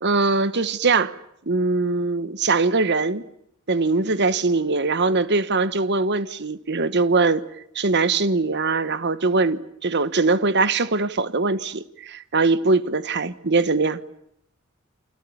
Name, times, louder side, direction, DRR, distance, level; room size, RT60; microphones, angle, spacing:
voice 1, 0.0-1.2 1.5-3.2 3.7-7.4 7.7-14.0, right 3 dB, 50° right, 1.2 m, -21 dB
30.0 x 25.0 x 7.1 m
head